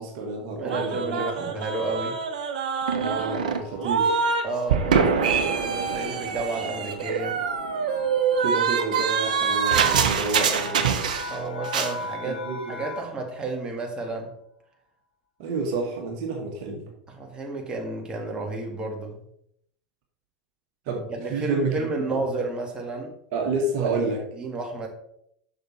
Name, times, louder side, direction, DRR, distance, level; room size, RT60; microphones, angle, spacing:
voice 1, 0.0-1.2 2.9-4.2 8.4-10.9 12.2-12.7 15.4-16.9 20.9-22.2 23.3-24.2, right 3 dB, 55° right, 1 dB, 1.6 m, -29 dB
voice 2, 0.6-2.2 4.4-7.4 11.3-14.3 17.1-19.3 21.1-23.1 23.8-24.9, right 2 dB, 20° right, 1 dB, 1.9 m, -31 dB
sound 1, 0.7-4.4 4.7-11.4 11.6-11.9, right 6 dB, 70° right, 0.9 m, -25 dB
sound 2, 1.2-13.3, left 3 dB, 75° left, 1.2 m, -42 dB
6.6 x 6.2 x 4.3 m, 0.72 s
figure-of-eight pair, 85°, 4 cm